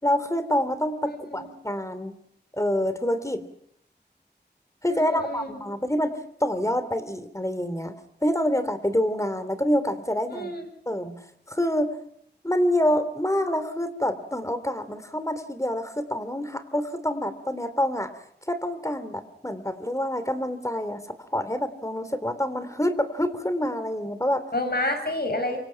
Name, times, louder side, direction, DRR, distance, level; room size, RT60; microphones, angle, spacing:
voice 1, 0.0-2.1 2.5-3.4 4.8-7.9 8.2-10.5 10.9-11.2 11.5-11.9 12.4-18.1 18.5-24.4, left 1 dB, 15° left, 11 dB, 3.2 m, -27 dB
voice 2, 1.1-1.5 4.9-5.6 10.3-10.7 24.5-25.6, left 1 dB, 65° left, 5 dB, 7.5 m, -29 dB
27.5 x 25.5 x 5.9 m, 0.69 s
wide cardioid pair, 45°, 18 cm